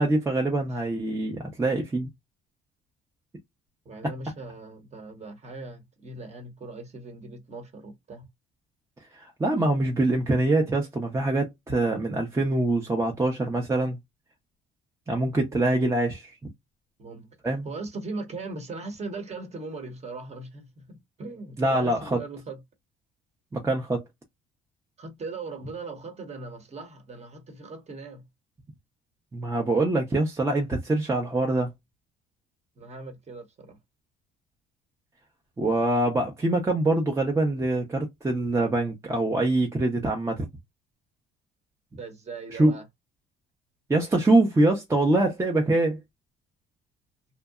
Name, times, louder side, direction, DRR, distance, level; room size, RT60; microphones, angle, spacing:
voice 1, 0.0-2.1 9.1-14.0 15.1-16.3 17.4-17.7 21.6-22.2 23.5-24.0 29.3-31.7 35.6-40.5 42.5-42.7 43.9-46.0, right 2 dB, 15° right, 0.6 m, -24 dB
voice 2, 3.8-8.2 17.0-17.4 17.6-22.6 25.0-28.2 32.8-33.8 42.0-42.8, right 3 dB, 35° right, 0.9 m, -39 dB
2.7 x 2.1 x 2.3 m
cardioid pair, 105°, 20 cm